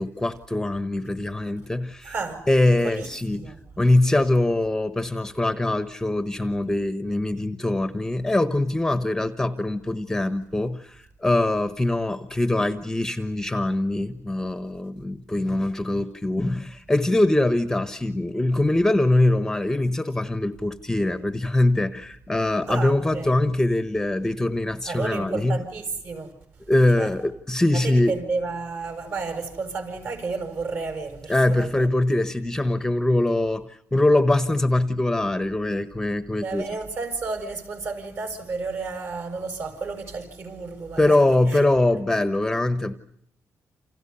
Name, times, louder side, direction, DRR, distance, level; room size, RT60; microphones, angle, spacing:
voice 1, 0.0-2.1 2.5-25.6 26.7-28.1 31.3-36.6 41.0-42.9, left 1 dB, 10° left, 1.1 m, -23 dB
voice 2, 2.0-2.4 2.8-3.6 22.7-23.3 24.8-26.3 27.0-27.1 27.7-31.9 36.4-41.2 41.5-41.6, right 4 dB, 50° right, 7.0 m, -32 dB
29.5 x 28.5 x 5.6 m
cardioid pair, 155°, 6 cm